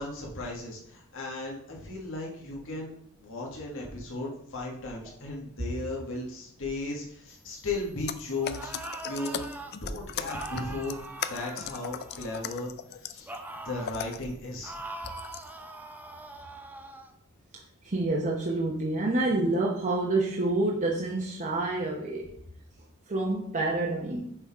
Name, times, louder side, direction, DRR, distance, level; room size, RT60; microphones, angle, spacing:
voice 1, 0.0-2.9 3.2-8.7 9.1-9.4 9.8-11.0 11.2-12.7 13.1-13.3 13.6-14.7, left 2 dB, 65° left, -2 dB, 1.7 m, -36 dB
Keyboard typing, 8.1-13.4 13.9-14.3 15.0-15.5, left 9 dB, 50° left, 0.4 m, -38 dB
Sebastian Denzer - Scream, 8.4-9.7 10.3-12.5 13.3-14.0 14.6-17.1, right 2 dB, 10° right, 0.5 m, -42 dB
voice 2, 17.8-22.3 23.1-24.4, right 2 dB, 35° right, -3 dB, 0.9 m, -28 dB
6.6 x 4.0 x 4.8 m, 0.67 s
head